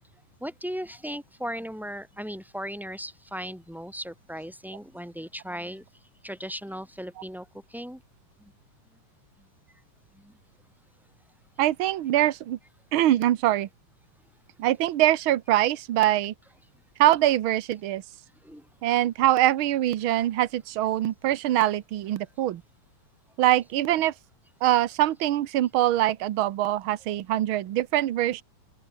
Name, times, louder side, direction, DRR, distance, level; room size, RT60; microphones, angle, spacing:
voice 1, 0.4-5.9 6.2-8.0 8.4-8.5 10.1-10.3 18.4-18.7, equal, ahead, 4.6 m, -37 dB
voice 2, 11.6-12.6 12.9-13.7 14.6-16.3 17.0-18.0 18.8-22.6 23.4-24.1 24.6-28.4, right 13 dB, 75° right, 1.2 m, -23 dB
open air
omnidirectional pair, 3.6 m